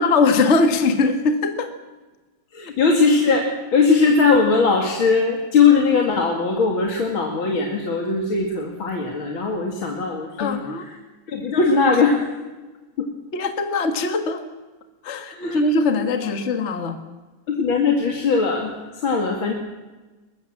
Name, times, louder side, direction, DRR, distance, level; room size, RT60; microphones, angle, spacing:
voice 1, 0.0-1.7 10.4-10.9 13.3-14.4 15.0-17.0, left 3 dB, 35° left, 7 dB, 1.8 m, -21 dB
voice 2, 2.5-11.0 11.3-12.2 13.0-13.1 15.2-15.6 16.2-16.3 17.5-19.5, left 4 dB, 70° left, 1 dB, 3.1 m, -20 dB
22.5 x 20.5 x 7.4 m, 1.2 s
omnidirectional pair, 2.3 m